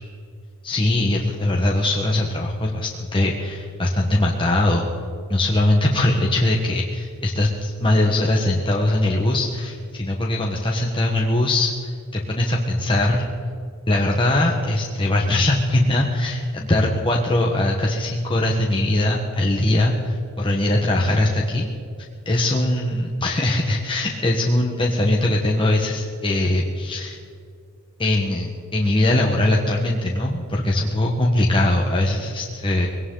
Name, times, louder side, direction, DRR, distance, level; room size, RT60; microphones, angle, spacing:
voice 1, 0.6-4.8 5.3-13.3 13.9-21.7 22.2-27.2 28.0-32.9, left 1 dB, 25° left, -1 dB, 1.2 m, -21 dB
21.0 x 18.0 x 3.9 m, 2.3 s
head